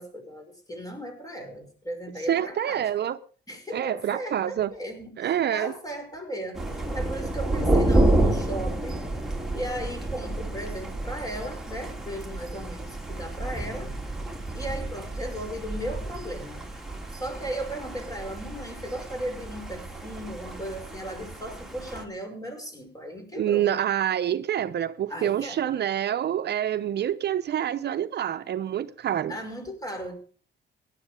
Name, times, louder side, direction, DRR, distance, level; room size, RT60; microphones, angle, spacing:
voice 1, 0.0-2.9 3.5-9.0 9.5-13.9 14.5-16.6 17.1-23.7 25.1-25.7 29.3-30.2, equal, 20° left, 5.6 m, -36 dB
voice 2, 2.3-3.2 3.7-4.7 5.2-5.7 23.4-29.4, right 10 dB, 60° right, 0.7 m, -27 dB
Thunder, 6.5-22.0, right 1 dB, ahead, 3.2 m, -29 dB
16.5 x 11.0 x 5.1 m
cardioid pair, 90°, 20 cm